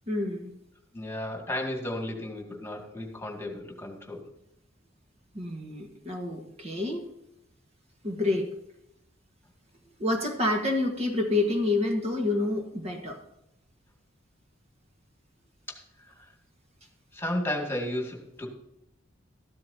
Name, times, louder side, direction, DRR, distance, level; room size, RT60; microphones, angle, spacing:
voice 1, 0.1-0.5 5.3-7.1 8.0-8.5 10.0-13.2, left 2 dB, 35° right, 2 dB, 1.5 m, -28 dB
voice 2, 0.9-4.2 17.1-18.5, left 1 dB, 15° left, 1 dB, 2.1 m, -33 dB
13.5 x 12.5 x 2.8 m, 0.80 s
head